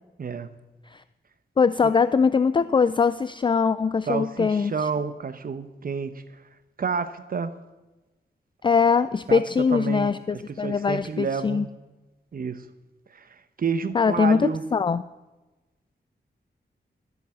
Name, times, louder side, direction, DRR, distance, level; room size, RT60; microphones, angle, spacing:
voice 1, 0.2-0.6 1.8-1.9 4.1-6.2 6.8-7.5 9.3-11.7 12.3-12.7 13.1-14.6, right 5 dB, 55° right, 12 dB, 0.9 m, -30 dB
voice 2, 1.6-4.7 8.6-11.6 13.9-15.0, left 5 dB, 30° left, 14 dB, 0.3 m, -22 dB
13.5 x 8.0 x 7.1 m, 1.1 s
wide cardioid pair, 100°, 18 cm